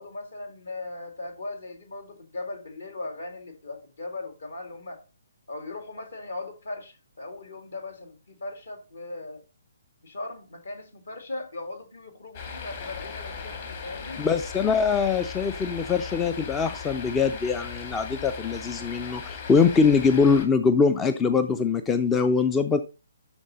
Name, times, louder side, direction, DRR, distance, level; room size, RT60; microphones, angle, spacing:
voice 1, 0.0-5.0 5.5-9.4 10.0-14.3, left 2 dB, 60° left, 2.1 m, -38 dB
sound 1, 12.3-20.5, left 5 dB, 40° left, 2.2 m, -38 dB
voice 2, 14.2-22.8, left 5 dB, 10° left, 0.4 m, -23 dB
11.5 x 3.9 x 3.9 m
figure-of-eight pair, 135°, 0 cm